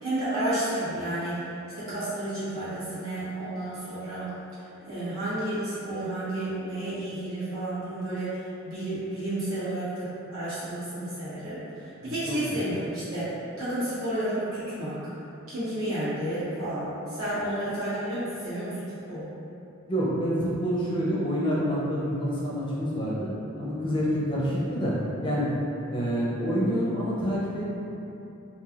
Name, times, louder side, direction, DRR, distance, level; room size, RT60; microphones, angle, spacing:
voice 1, 0.0-1.5 1.7-4.3 4.8-8.4 8.6-15.1 15.5-18.7 19.1-19.3, right 1 dB, 85° right, -12 dB, 1.3 m, -31 dB
voice 2, 12.1-12.4 19.9-24.9 25.2-25.5 25.9-27.6, equal, 25° left, -6 dB, 0.5 m, -27 dB
3.2 x 2.5 x 2.4 m, 2.9 s
head